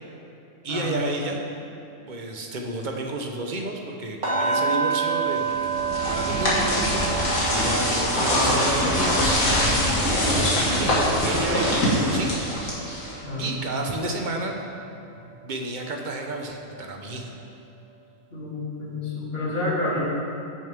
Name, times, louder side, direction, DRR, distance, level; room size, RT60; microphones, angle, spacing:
voice 1, 0.6-1.4 2.1-5.7 6.1-9.4 9.7-12.5 13.4-14.6 15.4-17.3, right 2 dB, 40° right, 2 dB, 1.0 m, -31 dB
sound 1, 4.2-14.2 14.5-14.8 15.2-15.3, right 5 dB, 60° right, 2.6 m, -30 dB
sound 2, 5.5-13.3, left 1 dB, 85° left, 2.4 m, -23 dB
voice 2, 13.2-13.6 18.3-20.0, left 2 dB, 45° left, -8 dB, 3.0 m, -29 dB
15.0 x 7.1 x 3.5 m, 2.9 s
omnidirectional pair, 1.4 m